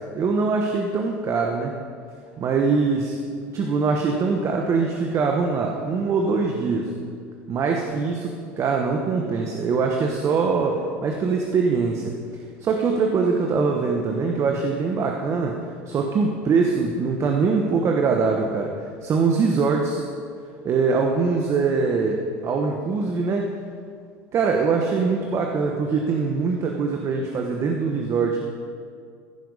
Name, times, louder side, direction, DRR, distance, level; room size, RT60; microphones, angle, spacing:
voice 1, 0.1-1.7 2.4-3.2 3.5-6.9 7.5-12.2 12.6-15.6 15.9-18.7 19.0-20.0 20.6-23.5 24.3-28.4, right 4 dB, 40° right, 2 dB, 1.0 m, -23 dB
14.5 x 5.8 x 5.4 m, 2.2 s
hypercardioid pair, 85°, 7 cm